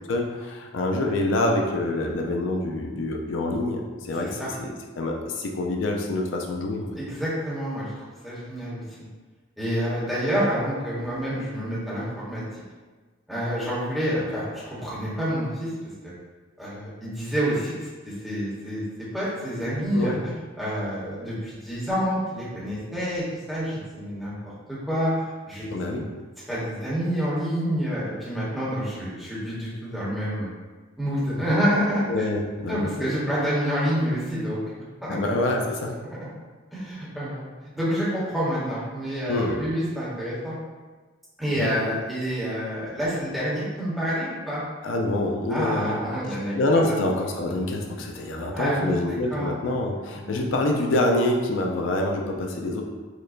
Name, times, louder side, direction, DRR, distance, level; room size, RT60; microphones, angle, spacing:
voice 1, 0.1-6.9 19.9-20.2 25.7-26.0 32.1-32.9 35.1-36.0 39.3-39.6 41.5-41.8 44.8-46.0 46.6-52.8, left 2 dB, 75° left, 1 dB, 0.4 m, -26 dB
voice 2, 7.0-9.0 9.6-12.6 13.3-15.7 16.0-16.1 16.6-18.8 19.1-20.2 20.6-26.0 26.5-30.5 31.0-32.3 32.7-34.6 35.0-35.2 36.7-37.4 37.7-40.5 41.4-44.6 45.5-47.0 48.5-49.5 50.2-50.4, equal, ahead, -9 dB, 0.9 m, -28 dB
4.8 x 2.1 x 2.4 m, 1.3 s
head